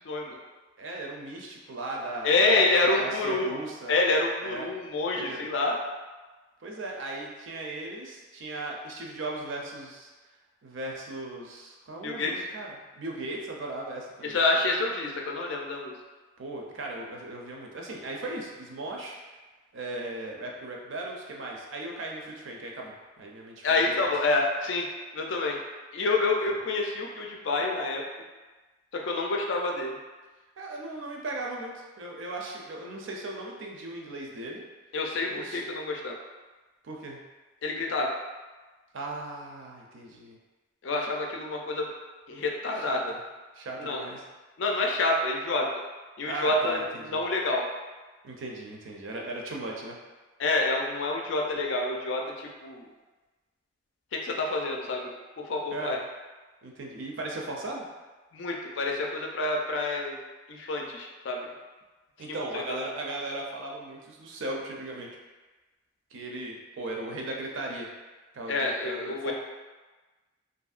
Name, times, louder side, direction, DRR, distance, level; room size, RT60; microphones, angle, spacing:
voice 1, 0.1-0.4 2.2-3.6 3.9-5.8 12.0-12.3 14.2-16.0 23.6-25.6 25.9-28.0 28.9-30.0 34.9-36.2 37.6-38.1 40.8-41.9 42.3-43.0 43.8-44.0 44.6-45.7 46.2-47.7 50.4-52.9 54.1-55.1 55.5-56.0 58.3-60.2 60.5-61.5 62.3-62.8 68.5-69.3, left 2 dB, 70° left, 1 dB, 0.4 m, -28 dB
voice 2, 0.8-2.7 2.9-3.9 4.4-4.7 5.1-5.5 6.6-10.1 10.6-14.4 16.4-19.2 19.7-24.1 26.5-26.6 30.6-34.6 35.3-35.6 36.8-37.2 38.9-40.4 42.7-43.2 43.5-44.2 46.2-47.2 48.2-50.0 55.7-56.0 56.6-57.9 62.2-65.1 66.1-67.9 68.3-69.3, right 2 dB, 75° right, -1 dB, 0.5 m, -37 dB
2.8 x 2.6 x 2.4 m, 1.2 s
head